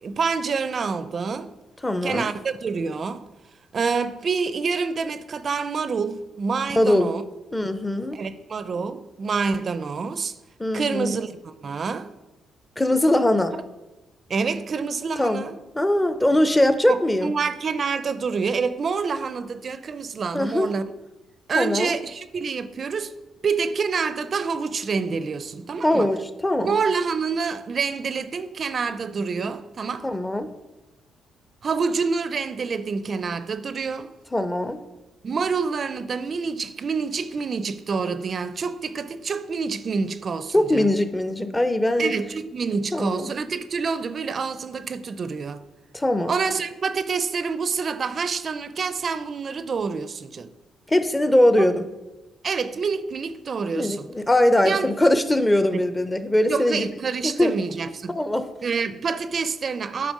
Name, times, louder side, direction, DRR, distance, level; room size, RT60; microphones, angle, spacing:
voice 1, 0.0-1.5 2.0-3.3 3.7-7.2 8.1-10.4 10.7-12.1 14.3-15.6 16.9-20.9 21.5-23.2 23.4-26.1 26.6-30.1 31.6-34.1 35.2-40.9 42.0-45.6 46.3-50.5 51.6-51.7 52.4-54.1 54.6-54.9 55.7-55.8 56.5-58.2 58.6-60.1, right 5 dB, 45° right, 0.4 m, -27 dB
voice 2, 1.8-2.3 6.7-7.1 7.5-8.2 10.6-11.2 12.8-13.6 15.2-15.5 15.8-17.3 20.3-20.7 21.5-22.0 25.8-26.2 26.4-26.7 30.0-30.5 34.3-34.8 40.5-42.1 42.9-43.3 45.9-46.3 50.9-51.8 53.7-56.9 57.4-57.5 58.1-58.4, left 1 dB, 15° left, 0.5 m, -21 dB
8.5 x 3.3 x 5.3 m
cardioid pair, 90°, 0 cm